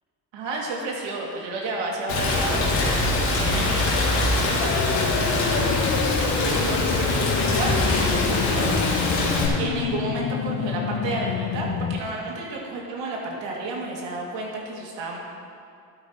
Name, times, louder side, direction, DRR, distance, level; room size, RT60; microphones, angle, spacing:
voice 1, 0.3-5.7 6.4-8.7 9.6-15.2, right 2 dB, 60° right, -2 dB, 2.8 m, -32 dB
Rain, 2.1-9.5, left 2 dB, 80° left, 2.9 m, -23 dB
sound 1, 4.6-12.0, left 7 dB, 45° left, 1.0 m, -28 dB
12.5 x 12.5 x 3.2 m, 2.5 s
hypercardioid pair, 65°, 50 cm